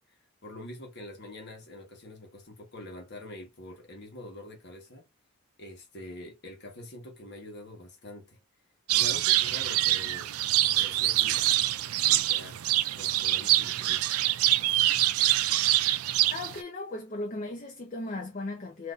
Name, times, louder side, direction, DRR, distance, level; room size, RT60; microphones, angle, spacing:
voice 1, 0.4-5.1 5.6-8.4 8.9-10.3 10.7-11.4 12.0-12.6 12.9-14.0, left 1 dB, 50° left, 1.2 m, -45 dB
sound 1, 8.9-16.6, right 14 dB, 80° right, 0.3 m, -25 dB
voice 2, 16.3-18.9, left 2 dB, 35° left, 0.6 m, -36 dB
3.9 x 2.6 x 2.4 m
head